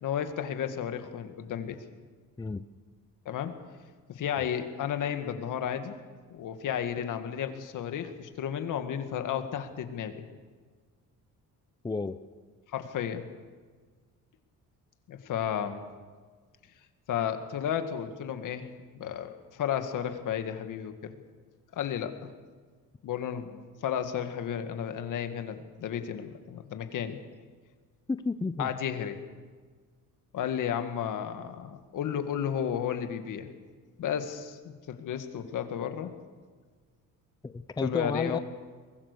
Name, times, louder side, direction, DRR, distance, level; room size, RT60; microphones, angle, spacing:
voice 1, 0.0-1.8 3.3-3.6 4.1-6.0 6.3-10.2 12.7-13.3 15.1-15.8 17.1-18.7 18.9-21.2 21.7-22.2 23.0-27.2 28.6-29.2 30.3-33.5 34.0-36.1 37.8-38.4, left 9 dB, 65° left, 8 dB, 2.0 m, -33 dB
voice 2, 11.8-12.2 28.1-28.7 37.4-38.4, left 3 dB, 15° left, 12 dB, 0.6 m, -32 dB
23.0 x 20.5 x 6.9 m, 1.5 s
cardioid pair, 125°, 33 cm